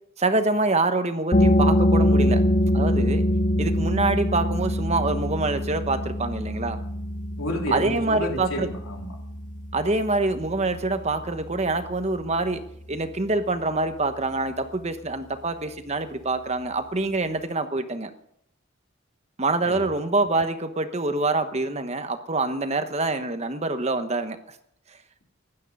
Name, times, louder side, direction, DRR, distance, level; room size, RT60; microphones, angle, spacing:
voice 1, 0.2-2.4 2.7-3.2 3.6-6.8 7.7-8.7 9.7-12.6 12.9-18.1 19.4-24.4, right 2 dB, 30° right, 9 dB, 1.1 m, -25 dB
sound 1, 1.3-12.7, left 1 dB, 40° left, 1.7 m, -24 dB
voice 2, 7.4-9.2 19.7-19.9, equal, 80° left, 1 dB, 3.5 m, -31 dB
16.0 x 12.0 x 5.5 m, 0.70 s
head